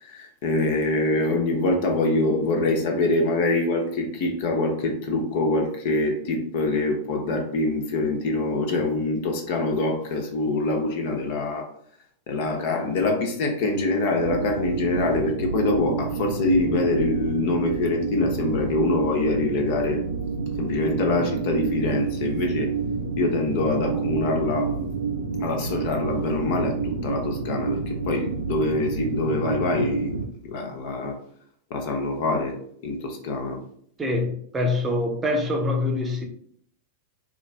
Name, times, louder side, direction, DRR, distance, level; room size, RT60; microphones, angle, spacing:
voice 1, 0.0-11.7 12.3-20.0 20.6-22.7 23.2-24.8 25.4-30.1 30.4-31.2 31.7-33.6, left 2 dB, 50° left, 2 dB, 0.7 m, -25 dB
sound 1, 14.2-30.3, right 5 dB, 80° right, 0.3 m, -29 dB
voice 2, 34.0-36.2, left 2 dB, 15° right, 2 dB, 0.7 m, -25 dB
4.0 x 2.4 x 2.5 m, 0.63 s
figure-of-eight pair, 90°, 0 cm